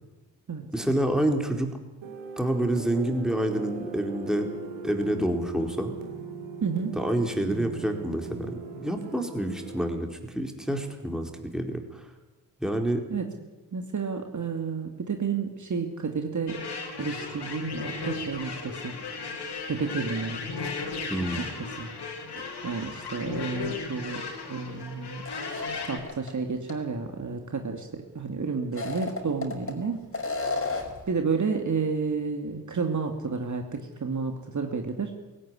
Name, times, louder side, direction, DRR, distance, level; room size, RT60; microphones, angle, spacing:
voice 1, 0.7-1.7 2.4-4.5 4.8-5.9 6.9-12.0 12.6-13.0 21.1-21.5, right 1 dB, ahead, 4 dB, 4.4 m, -28 dB
sound 1, 2.0-9.8, right 5 dB, 70° right, 3.9 m, -39 dB
voice 2, 6.6-7.0 13.1-13.2 13.7-16.6 17.0-18.9 19.7-20.5 21.4-21.5 21.8-21.9 22.4-24.2 24.5-25.2 25.8-30.0 31.1-35.1, right 5 dB, 35° right, 4 dB, 2.6 m, -31 dB
sound 2, 16.5-26.0, left 4 dB, 55° left, 5.3 m, -36 dB
sound 3, 25.2-26.3 26.7-26.8 28.6-29.7 30.1-31.0, left 3 dB, 25° left, 5.5 m, -32 dB
17.0 x 16.5 x 10.0 m, 1.1 s
hypercardioid pair, 45°, 48 cm